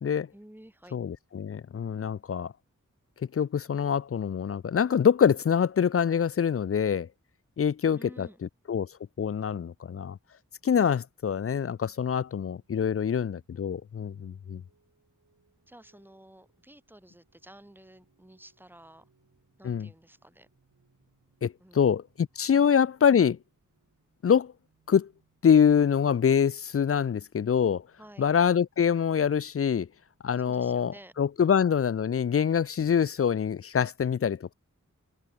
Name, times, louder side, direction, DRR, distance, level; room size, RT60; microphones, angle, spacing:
voice 1, 0.3-1.0 7.9-8.4 15.7-19.1 19.6-20.5 21.6-21.8 22.5-22.7 28.0-28.3 30.4-31.1 31.4-31.7, right 1 dB, 5° right, 2.1 m, -52 dB
voice 2, 0.9-2.5 3.3-7.1 7.6-8.3 8.7-8.9 9.2-10.2 10.6-14.6 19.6-19.9 21.4-23.4 24.2-24.5 24.9-25.1 25.4-27.8 28.2-29.9 30.2-34.5, left 7 dB, 45° left, 0.4 m, -25 dB
sound 1, 11.5-31.2, right 4 dB, 80° right, 6.8 m, -72 dB
open air
wide cardioid pair, 60°, 31 cm